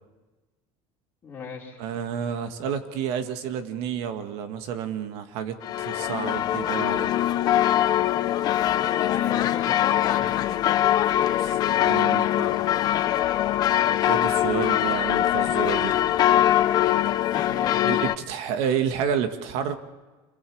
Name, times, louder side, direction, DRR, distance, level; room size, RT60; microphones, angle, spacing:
voice 1, 1.2-1.8 9.1-10.4 17.3-18.0, left 5 dB, 20° left, -3 dB, 5.1 m, -38 dB
voice 2, 1.8-7.2 11.4-12.6 14.0-16.0 17.8-19.8, right 8 dB, 60° right, 8 dB, 2.0 m, -30 dB
sound 1, 5.6-18.2, left 12 dB, 35° left, 0.7 m, -22 dB
27.5 x 23.0 x 4.8 m, 1.2 s
cardioid pair, 160°, 12 cm